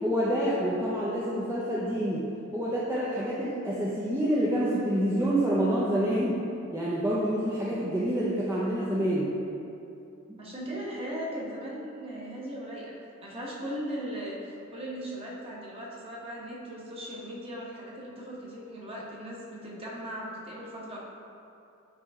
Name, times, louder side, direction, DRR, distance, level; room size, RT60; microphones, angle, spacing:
voice 1, 0.0-2.2 2.5-6.4 6.7-9.3 10.3-10.4, equal, 10° right, -8 dB, 0.6 m, -27 dB
voice 2, 10.4-12.9 13.2-14.4 14.7-21.0, equal, 30° right, -5 dB, 1.1 m, -38 dB
9.5 x 3.2 x 3.5 m, 2.7 s
head